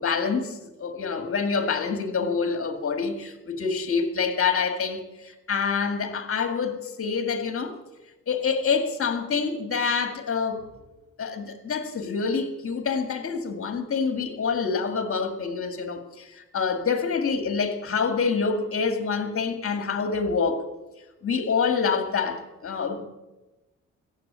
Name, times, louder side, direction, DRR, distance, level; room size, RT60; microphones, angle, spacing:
voice 1, 0.0-7.7 8.3-10.6 11.2-20.7 21.2-23.1, left 5 dB, 45° left, 2.2 m, -26 dB
15.0 x 7.8 x 8.8 m
cardioid pair, 90°, 30 cm